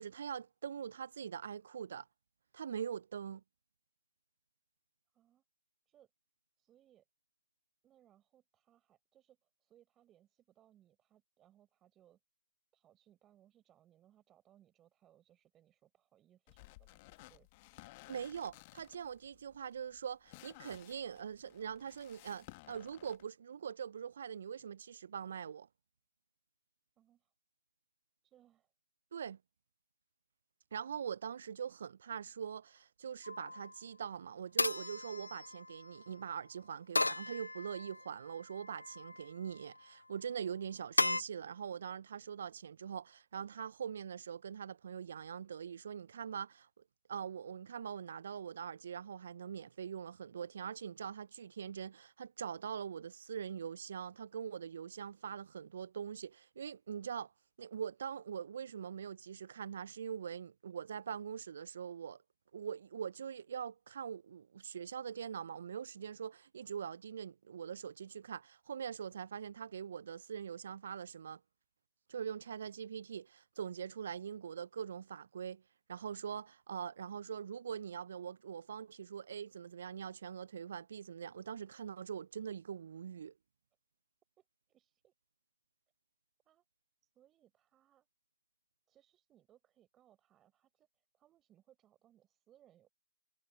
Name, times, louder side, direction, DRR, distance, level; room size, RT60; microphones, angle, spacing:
voice 1, 0.0-2.1 2.5-3.4 18.1-25.7 29.1-29.4 30.7-46.7 47.1-57.3 57.6-62.2 62.5-71.4 72.1-75.6 75.9-83.3, right 7 dB, 50° right, 0.4 m, -43 dB
voice 2, 6.6-7.1 7.8-12.2 12.7-17.5 27.0-27.3 28.2-28.7 84.4-85.1 86.4-86.6 87.0-88.1 88.9-92.9, right 11 dB, 15° right, 4.5 m, -68 dB
sound 1, 16.5-23.2, left 22 dB, 25° left, 1.4 m, -57 dB
sound 2, 33.2-33.7 34.6-35.9 37.0-38.0 38.6-39.2 41.0-41.2, left 2 dB, 85° left, 0.4 m, -35 dB
figure-of-eight pair, 145°, 0 cm